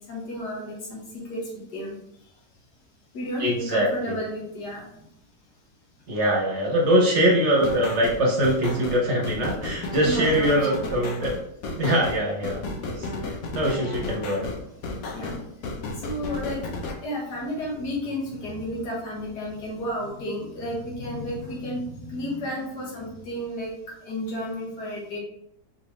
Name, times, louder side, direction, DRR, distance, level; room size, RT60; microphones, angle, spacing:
voice 1, 0.1-1.0 1.3-1.4 1.7-2.0 3.1-4.9 10.0-10.5 15.1-15.4 16.0-16.6 17.0-23.7 24.1-25.2, equal, 85° left, -3 dB, 2.0 m, -32 dB
voice 2, 3.4-4.2 6.1-11.3 11.8-12.6 12.9-14.5, equal, 50° right, -2 dB, 1.1 m, -23 dB
sound 1, 7.6-16.9, left 2 dB, 65° left, 1.0 m, -33 dB
4.6 x 3.5 x 3.0 m, 0.76 s
omnidirectional pair, 1.7 m